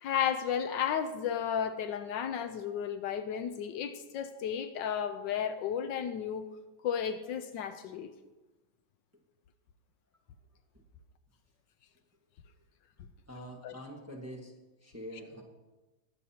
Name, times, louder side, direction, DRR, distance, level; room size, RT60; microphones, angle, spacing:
voice 1, 0.0-6.5 6.8-8.1 13.6-13.7, left 8 dB, 75° left, 9 dB, 1.3 m, -33 dB
voice 2, 13.3-14.5 14.8-15.4, equal, 10° right, -1 dB, 1.2 m, -45 dB
21.5 x 7.8 x 2.8 m, 1.1 s
omnidirectional pair, 2.1 m